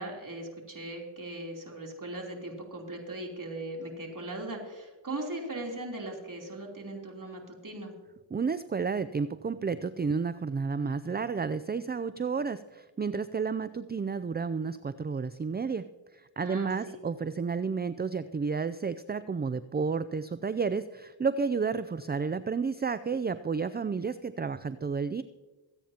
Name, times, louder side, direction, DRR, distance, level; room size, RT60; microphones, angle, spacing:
voice 1, 0.0-7.9 16.4-17.0, right 1 dB, 40° right, 0 dB, 3.5 m, -39 dB
voice 2, 8.3-15.8 16.4-25.2, right 5 dB, 20° right, 14 dB, 0.4 m, -31 dB
25.0 x 9.0 x 2.9 m, 1.2 s
cardioid pair, 45°, 48 cm